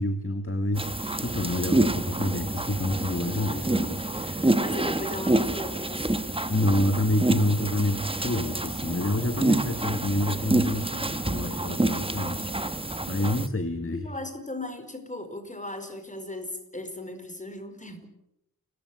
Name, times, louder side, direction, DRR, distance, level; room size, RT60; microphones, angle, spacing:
voice 1, 0.0-4.6 6.5-12.8 13.1-14.1, left 1 dB, 40° left, 8 dB, 1.9 m, -28 dB
sound 1, 0.8-13.5, right 2 dB, 15° right, 1.2 m, -27 dB
voice 2, 4.6-6.3 12.1-12.2 13.9-18.1, left 1 dB, 20° left, 8 dB, 4.9 m, -37 dB
30.0 x 15.5 x 9.6 m, 0.83 s
wide cardioid pair, 95°, 35 cm